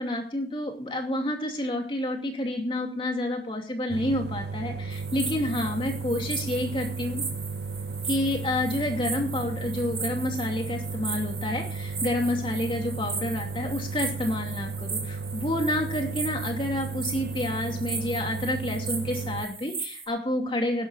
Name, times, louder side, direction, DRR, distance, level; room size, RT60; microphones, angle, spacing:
voice 1, 0.0-7.2 8.0-20.9, left 1 dB, 30° left, 3 dB, 2.6 m, -29 dB
sound 1, 3.9-19.5, right 4 dB, 65° right, 0.7 m, -34 dB
sound 2, 4.9-20.1, right 4 dB, 20° right, 3.5 m, -38 dB
20.5 x 11.5 x 2.6 m, 0.40 s
head